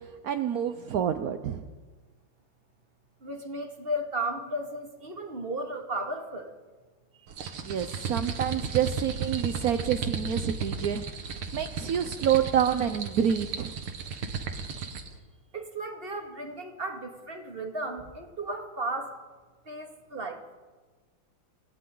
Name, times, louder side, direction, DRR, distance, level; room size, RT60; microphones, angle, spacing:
voice 1, 0.2-1.6 7.6-11.0 11.5-13.7, right 9 dB, 60° right, 8 dB, 1.0 m, -27 dB
voice 2, 3.2-6.5 9.3-9.5 15.5-19.2 19.7-20.4, right 1 dB, 25° right, 3 dB, 2.2 m, -35 dB
sound 1, 7.3-15.1, right 5 dB, 80° right, 2.4 m, -34 dB
29.5 x 25.5 x 3.9 m, 1.4 s
omnidirectional pair, 2.3 m